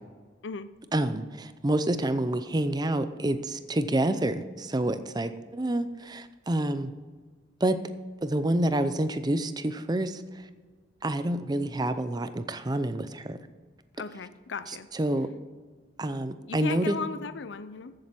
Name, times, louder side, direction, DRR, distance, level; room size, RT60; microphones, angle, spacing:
voice 1, 0.9-6.9 7.6-7.8 8.2-10.2 11.0-13.4 15.0-15.3 16.0-17.0, right 1 dB, 20° right, 11 dB, 0.6 m, -28 dB
voice 2, 14.0-14.9 16.5-17.9, left 5 dB, 75° left, 13 dB, 0.5 m, -36 dB
14.5 x 7.7 x 4.4 m, 1.5 s
head